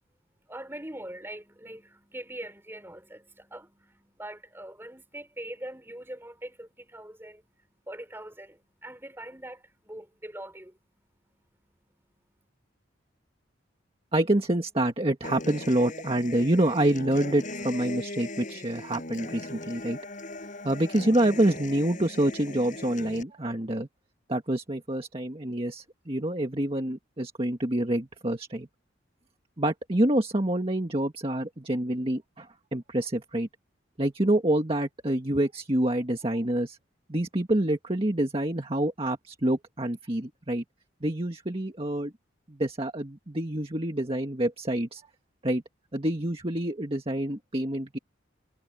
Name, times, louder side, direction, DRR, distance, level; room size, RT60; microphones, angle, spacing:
voice 1, 0.5-11.1 12.1-12.2, right 1 dB, 10° right, 5.9 m, -43 dB
voice 2, 14.1-20.0 20.6-23.9 24.3-28.7 29.6-33.5 34.0-36.8 37.1-40.6 41.0-42.1 42.5-45.0 45.4-45.6 45.9-48.0, right 1 dB, 30° right, 1.8 m, -27 dB
Human voice / Acoustic guitar, 15.2-23.2, left 2 dB, 40° left, 7.3 m, -39 dB
head